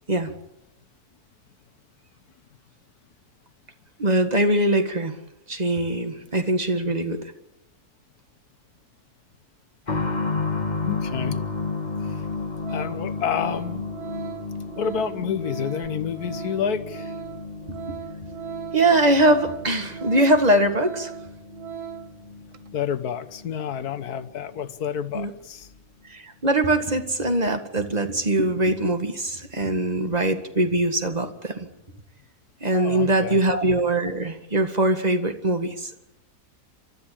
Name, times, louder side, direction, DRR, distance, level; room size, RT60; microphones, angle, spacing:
voice 1, 4.0-5.2 5.5-7.3 17.7-18.0 18.7-21.1 25.1-25.3 26.0-31.7 32.6-35.9, right 1 dB, 25° right, 7 dB, 1.8 m, -22 dB
sound 1, 9.9-24.3 24.6-24.7 25.6-25.7, left 3 dB, 30° left, 1.9 m, -33 dB
voice 2, 10.8-11.4 12.0-12.2 12.7-13.8 14.8-17.1 22.7-25.7 32.7-33.4, left 8 dB, 75° left, 12 dB, 1.6 m, -29 dB
Organ, 12.2-12.3 12.6-22.2 22.5-22.7, right 9 dB, 80° right, 1.6 m, -39 dB
28.5 x 13.5 x 8.7 m, 0.86 s
omnidirectional pair, 1.6 m